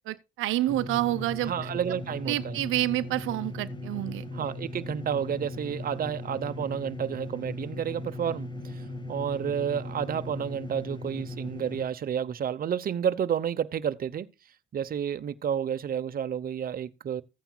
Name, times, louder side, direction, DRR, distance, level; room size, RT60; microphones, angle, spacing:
voice 1, 0.1-1.7 2.3-4.2, right 15 dB, 85° right, 0.6 m, -28 dB
sound 1, 0.7-11.8, left 2 dB, 25° left, 1.5 m, -38 dB
voice 2, 1.5-2.6 4.3-8.8 9.1-14.3 14.7-17.2, right 8 dB, 45° right, 0.8 m, -30 dB
15.0 x 9.0 x 2.2 m
cardioid pair, 90°, 20 cm